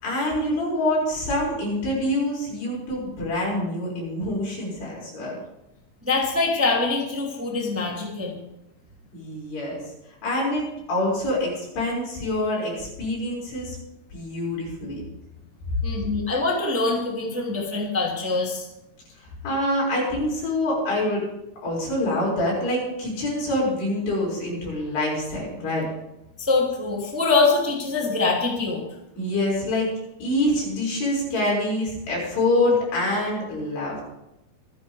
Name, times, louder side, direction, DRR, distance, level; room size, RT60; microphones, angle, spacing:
voice 1, 0.0-5.4 9.1-13.8 14.1-15.0 19.1-21.2 21.6-25.9 29.2-29.9 30.2-34.0, left 1 dB, 85° left, -4 dB, 8.3 m, -26 dB
voice 2, 6.0-8.4 15.8-18.7 26.4-28.8, left 3 dB, 5° right, -2 dB, 1.8 m, -24 dB
26.5 x 11.0 x 3.5 m, 0.91 s
omnidirectional pair, 4.7 m